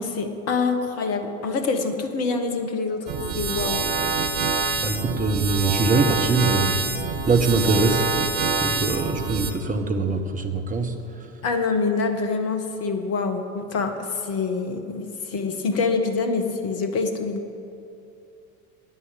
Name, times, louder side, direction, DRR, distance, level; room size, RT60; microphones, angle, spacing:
voice 1, 0.0-3.1 3.3-3.9 11.4-17.4, left 4 dB, 35° left, 6 dB, 1.6 m, -25 dB
sound 1, 3.1-9.5, right 4 dB, 60° right, 1.3 m, -26 dB
voice 2, 4.8-8.0 8.6-10.9, right 3 dB, 20° right, 5 dB, 1.3 m, -23 dB
11.0 x 9.1 x 8.6 m, 2.6 s
figure-of-eight pair, 75°, 41 cm